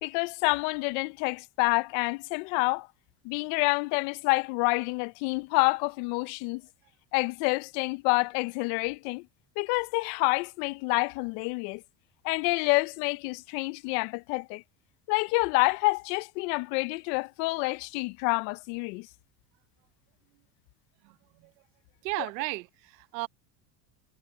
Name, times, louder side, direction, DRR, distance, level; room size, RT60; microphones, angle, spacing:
voice 1, 0.0-2.9 3.2-6.6 7.1-9.3 9.6-11.8 12.2-14.6 15.1-19.1, left 27 dB, 75° left, 0.9 m, -28 dB
voice 2, 21.0-21.5 22.0-23.3, right 24 dB, 80° right, 1.2 m, -35 dB
supercardioid pair, 110°, 49 cm